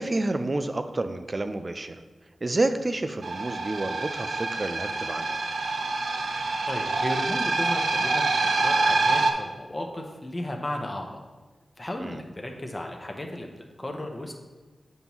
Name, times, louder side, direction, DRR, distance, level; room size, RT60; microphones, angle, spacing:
voice 1, 0.0-2.0 2.4-5.4 12.0-12.2, right 2 dB, 35° right, 9 dB, 0.4 m, -29 dB
sound 1, 3.2-9.3, right 3 dB, 85° right, 0.6 m, -26 dB
voice 2, 6.7-8.3 8.5-11.2 11.8-13.5 13.8-14.3, left 1 dB, 20° left, 2 dB, 0.7 m, -34 dB
7.8 x 5.4 x 3.0 m, 1.2 s
wide cardioid pair, 110°, 0 cm